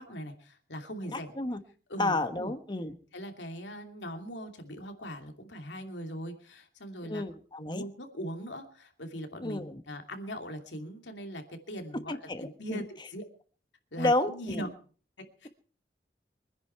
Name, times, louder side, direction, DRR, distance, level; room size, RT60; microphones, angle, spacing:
voice 1, 0.0-1.3 1.9-2.5 3.1-7.2 7.6-13.2 13.9-14.7 15.4-15.5, equal, 90° left, 5 dB, 2.7 m, -40 dB
voice 2, 1.1-1.6 2.0-3.0 7.1-7.8 9.4-9.8 11.9-12.8 14.0-14.7, left 2 dB, 25° left, 10 dB, 1.1 m, -31 dB
24.5 x 10.5 x 4.6 m, 0.43 s
head